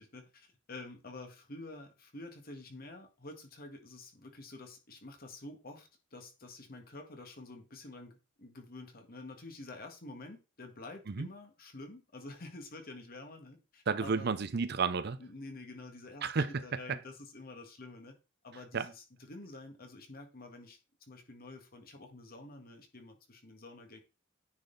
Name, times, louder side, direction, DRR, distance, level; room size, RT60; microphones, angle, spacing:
voice 1, 0.0-14.3 15.2-16.3 16.6-18.1 18.4-20.8 21.1-24.0, left 2 dB, 50° left, 1.8 m, -49 dB
voice 2, 13.9-15.2 16.2-17.0 18.7-18.9, right 5 dB, 55° right, 0.6 m, -32 dB
9.6 x 4.0 x 4.0 m
head